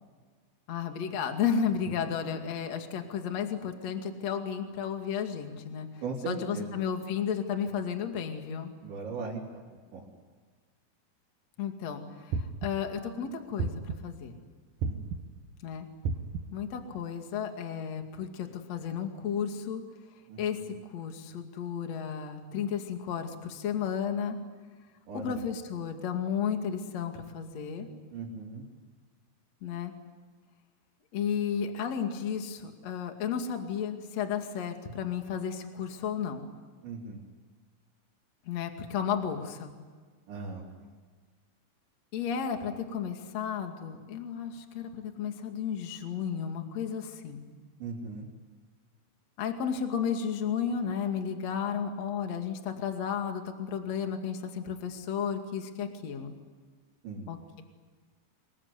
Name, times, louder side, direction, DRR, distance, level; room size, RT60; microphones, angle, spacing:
voice 1, 0.7-5.9 6.2-8.7 11.6-14.3 15.6-15.9 16.5-19.8 20.4-24.4 25.1-27.9 29.6-29.9 31.1-36.4 38.5-39.8 42.1-47.4 49.4-56.3 57.3-57.6, left 7 dB, 45° left, 5 dB, 2.7 m, -33 dB
voice 2, 6.0-6.7 8.8-9.4 9.9-10.1 14.8-15.1 20.3-20.4 25.1-25.3 28.1-28.7 36.8-37.2 40.3-40.6 47.8-48.3 57.0-57.3, right 4 dB, 65° right, -7 dB, 6.1 m, -38 dB
sound 1, 12.3-13.0 13.6-14.2 14.8-15.5 16.0-16.7, right 4 dB, 90° right, 1.8 m, -33 dB
26.0 x 22.5 x 9.7 m, 1.5 s
omnidirectional pair, 5.7 m